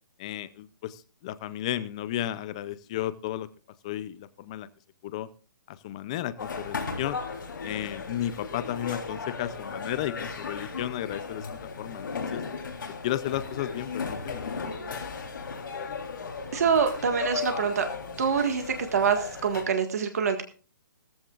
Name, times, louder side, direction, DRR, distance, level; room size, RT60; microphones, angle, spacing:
voice 1, 0.2-3.5 3.8-4.7 5.0-5.3 5.7-7.2 7.6-12.4 13.0-14.7, left 12 dB, 20° left, 16 dB, 0.5 m, -33 dB
sound 1, 6.4-19.6, left 4 dB, 85° left, 3.5 m, -36 dB
voice 2, 16.5-17.9 18.2-18.6 18.9-20.4, right 6 dB, 50° right, 6 dB, 1.7 m, -25 dB
17.5 x 14.5 x 2.5 m, 0.38 s
hypercardioid pair, 175°, 11 cm